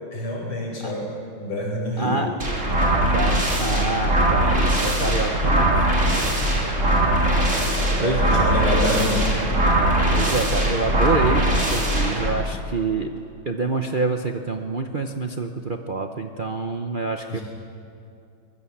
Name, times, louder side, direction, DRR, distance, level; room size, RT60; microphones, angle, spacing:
voice 1, 0.1-1.1 1.4-2.2 7.4-9.4 9.7-9.9 17.3-17.4, left 1 dB, 85° left, -1 dB, 5.8 m, -27 dB
voice 2, 2.0-2.3 3.0-5.7 8.0-8.2 10.1-13.1 13.4-17.4, right 3 dB, 70° right, 4 dB, 0.4 m, -26 dB
sound 1, 2.4-12.3, right 1 dB, 35° right, 3.7 m, -21 dB
23.5 x 20.5 x 7.3 m, 2.7 s
omnidirectional pair, 2.3 m